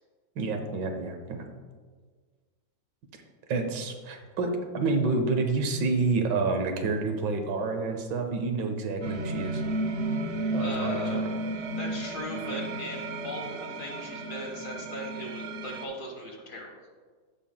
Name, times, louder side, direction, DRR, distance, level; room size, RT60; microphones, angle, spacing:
voice 1, 0.4-1.5 3.5-9.6 10.5-11.3 12.5-12.6, right 3 dB, 75° right, 5 dB, 1.5 m, -29 dB
sound 1, 9.0-15.9, right 2 dB, 55° right, 0.9 m, -33 dB
voice 2, 10.6-11.2 11.8-16.8, left 1 dB, 50° left, 0 dB, 1.6 m, -38 dB
14.5 x 5.3 x 2.2 m, 1.5 s
omnidirectional pair, 2.0 m